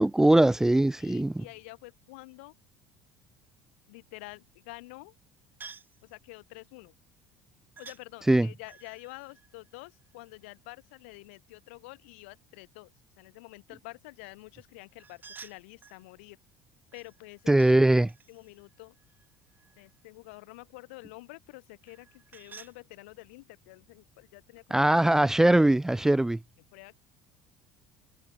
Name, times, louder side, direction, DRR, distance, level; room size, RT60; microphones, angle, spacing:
voice 1, 0.0-1.4 8.3-8.5 17.5-18.1 24.7-26.4, right 1 dB, 5° right, 0.4 m, -21 dB
voice 2, 1.0-2.5 3.9-5.1 6.0-6.9 7.8-16.4 16.9-17.8 18.3-18.9 19.8-25.0 26.7-27.0, left 24 dB, 70° left, 3.5 m, -48 dB
sound 1, 5.6-6.0 7.8-8.0 8.6-10.4 15.0-16.0 16.9-17.8 18.1-20.0 21.8-22.8, right 5 dB, 30° right, 5.0 m, -51 dB
hypercardioid pair, 65°, 7 cm